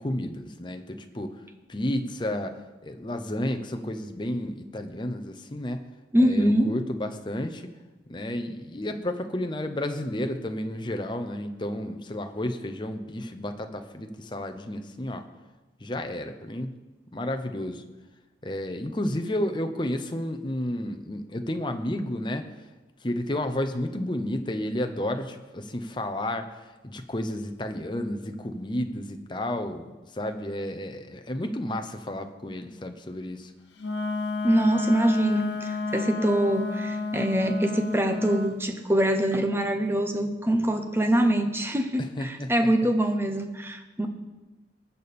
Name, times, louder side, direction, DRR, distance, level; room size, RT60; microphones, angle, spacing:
voice 1, 0.0-1.4 1.7-5.8 6.2-7.7 8.1-15.2 15.8-16.7 17.1-17.8 18.4-22.5 23.0-33.5 42.0-42.5, left 1 dB, 25° left, 6 dB, 0.8 m, -31 dB
voice 2, 6.1-6.7 34.4-44.1, right 1 dB, 15° right, 6 dB, 0.9 m, -24 dB
Wind instrument woodwind instrument, 33.8-38.5, left 3 dB, 80° left, 1.3 m, -30 dB
20.5 x 6.9 x 4.3 m, 1.1 s
head